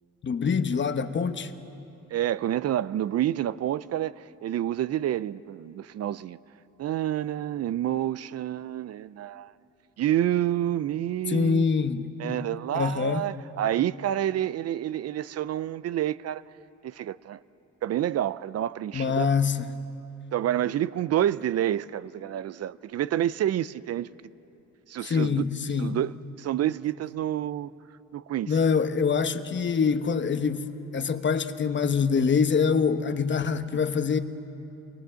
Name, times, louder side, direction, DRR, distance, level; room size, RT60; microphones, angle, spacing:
voice 1, 0.2-1.5 11.3-12.4 12.7-13.3 18.9-19.7 25.0-26.0 28.5-30.7 30.9-34.2, left 5 dB, 40° left, 1.0 m, -25 dB
voice 2, 2.1-6.4 6.8-9.5 10.0-11.7 12.2-16.4 16.8-17.4 17.8-19.3 20.3-24.1 24.9-25.4 25.8-27.7 28.1-28.5, right 12 dB, 55° right, 0.5 m, -28 dB
26.0 x 17.5 x 7.6 m
cardioid pair, 90°, 30 cm